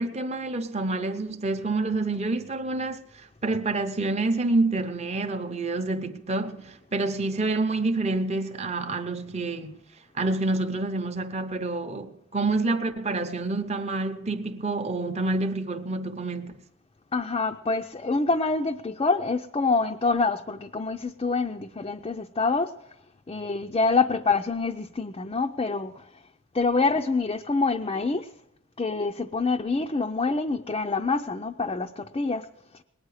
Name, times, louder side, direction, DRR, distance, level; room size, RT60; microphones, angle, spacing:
voice 1, 0.0-9.8 10.1-16.5, right 2 dB, 30° right, 0.7 m, -28 dB
voice 2, 17.1-22.7 23.3-26.0 26.5-28.3 28.8-32.5, left 3 dB, 25° left, 0.4 m, -26 dB
19.5 x 9.6 x 4.8 m
head